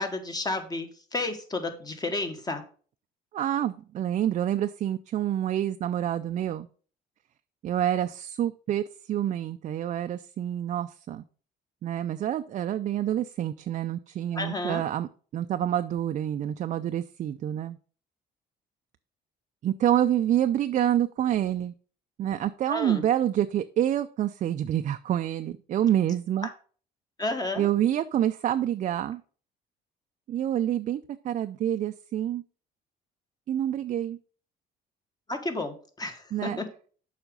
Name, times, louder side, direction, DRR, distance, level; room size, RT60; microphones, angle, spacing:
voice 1, 0.0-2.6 14.3-14.8 22.7-23.0 27.2-27.7 35.3-36.7, left 2 dB, 25° left, 6 dB, 1.6 m, -32 dB
voice 2, 3.3-6.7 7.6-11.2 11.8-17.8 19.6-21.7 22.2-26.5 27.6-29.2 30.3-32.4 33.5-34.2 36.3-36.6, right 11 dB, 45° right, 9 dB, 0.4 m, -27 dB
7.2 x 5.0 x 5.2 m, 0.42 s
cardioid pair, 110°, 17 cm